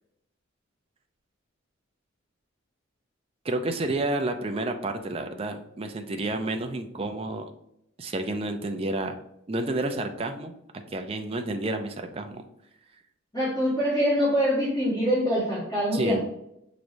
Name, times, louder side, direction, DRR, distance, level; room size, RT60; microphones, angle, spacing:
voice 1, 3.4-7.5 8.0-9.1 9.5-10.5 10.9-12.4 15.9-16.2, right 2 dB, 30° right, 6 dB, 0.4 m, -30 dB
voice 2, 13.3-16.2, equal, 15° left, -10 dB, 1.5 m, -24 dB
6.0 x 3.1 x 2.6 m, 0.80 s
head